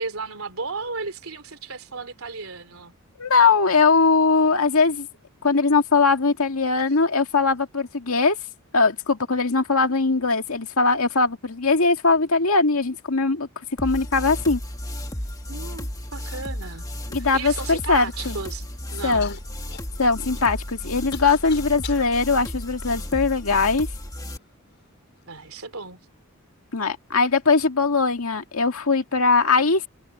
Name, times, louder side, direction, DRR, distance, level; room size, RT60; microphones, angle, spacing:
voice 1, 0.0-2.9 15.5-16.9 17.2-19.3 25.3-26.0, right 4 dB, 75° right, 3.2 m, -34 dB
voice 2, 3.2-5.1 5.4-8.4 8.7-13.5 13.8-14.6 17.1-18.4 19.0-19.4 20.0-23.9 26.7-29.9, left 4 dB, 75° left, 2.0 m, -20 dB
sound 1, 13.8-24.4, left 1 dB, 15° left, 1.6 m, -33 dB
Human voice / Cough, 17.6-17.7 18.2-18.7 19.2-22.1 22.8-23.6 24.4-24.5 25.2-25.5, left 8 dB, 50° left, 5.3 m, -43 dB
head